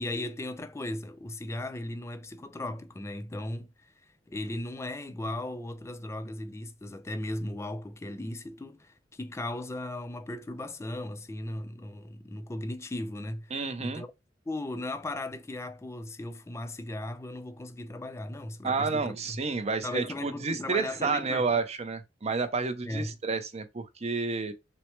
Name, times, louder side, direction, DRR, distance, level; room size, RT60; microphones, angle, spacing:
voice 1, 0.0-3.9 4.3-13.5 13.8-14.1 14.5-19.4 19.8-21.5 22.8-23.2, left 1 dB, 15° left, 0.4 m, -37 dB
voice 2, 13.5-14.0 18.6-24.5, right 4 dB, 35° right, 0.6 m, -30 dB
6.0 x 2.1 x 3.1 m
head